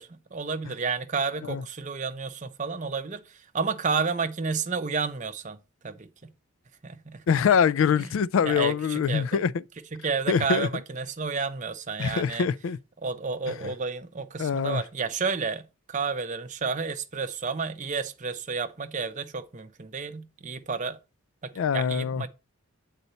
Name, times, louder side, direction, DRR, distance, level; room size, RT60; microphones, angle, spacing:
voice 1, 0.0-5.6 5.8-6.3 6.8-7.2 8.0-9.4 9.9-12.5 13.0-21.0 21.4-22.3, right 5 dB, 35° right, 0.6 m, -31 dB
voice 2, 7.3-9.5 10.3-10.7 12.0-12.8 14.4-14.8 21.6-22.2, left 6 dB, 65° left, 0.3 m, -24 dB
8.1 x 4.1 x 4.1 m
head